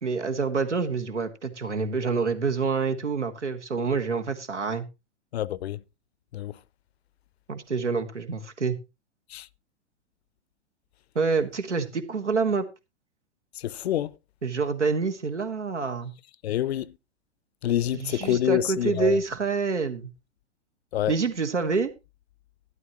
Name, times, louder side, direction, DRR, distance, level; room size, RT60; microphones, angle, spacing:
voice 1, 0.0-4.8 7.5-8.8 11.1-12.7 14.4-16.1 17.9-20.1 21.1-21.9, right 4 dB, 85° right, 1.6 m, -27 dB
voice 2, 5.3-5.8 6.3-6.5 9.3-9.5 13.6-14.1 16.4-16.9 17.6-19.2 20.9-21.1, left 12 dB, 65° left, 0.6 m, -27 dB
12.5 x 11.5 x 3.0 m
figure-of-eight pair, 110°, 35 cm